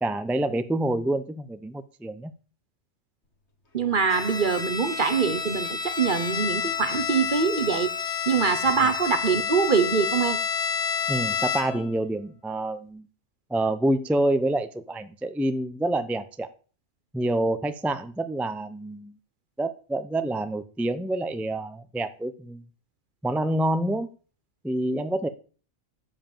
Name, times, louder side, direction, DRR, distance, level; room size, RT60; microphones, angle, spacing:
voice 1, 0.0-2.3 8.8-8.9 11.1-13.1 13.5-16.5 17.1-19.2 19.6-22.6 23.2-24.1 24.6-25.3, right 1 dB, ahead, 0.6 m, -27 dB
voice 2, 3.7-7.9 8.3-10.4, right 6 dB, 45° right, 1.0 m, -24 dB
Bowed string instrument, 4.1-11.9, left 7 dB, 60° left, 2.1 m, -29 dB
9.7 x 7.9 x 7.2 m
omnidirectional pair, 1.3 m